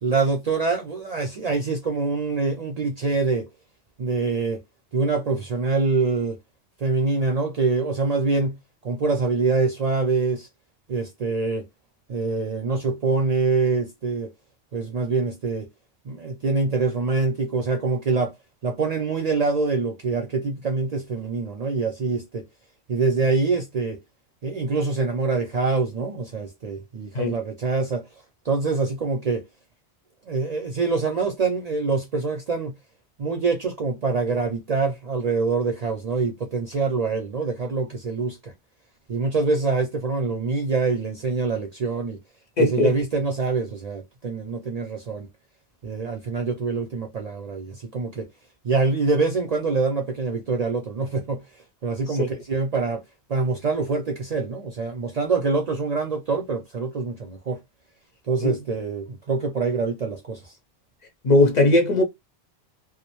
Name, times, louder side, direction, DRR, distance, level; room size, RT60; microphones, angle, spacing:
voice 1, 0.0-3.5 4.0-4.6 4.9-6.4 6.8-8.5 8.8-10.5 10.9-11.7 12.1-14.3 14.7-15.7 16.1-18.3 18.6-22.4 22.9-24.0 24.4-28.0 28.5-29.4 30.3-32.8 33.2-38.5 39.1-42.2 42.7-45.3 45.8-48.3 48.6-51.4 51.8-53.0 53.3-57.6 58.3-60.5, right 4 dB, 55° right, 0.5 m, -25 dB
voice 2, 42.6-42.9 52.1-52.3 58.4-58.5 61.2-62.0, left 2 dB, 50° left, 0.6 m, -19 dB
2.4 x 2.0 x 2.9 m
omnidirectional pair, 1.1 m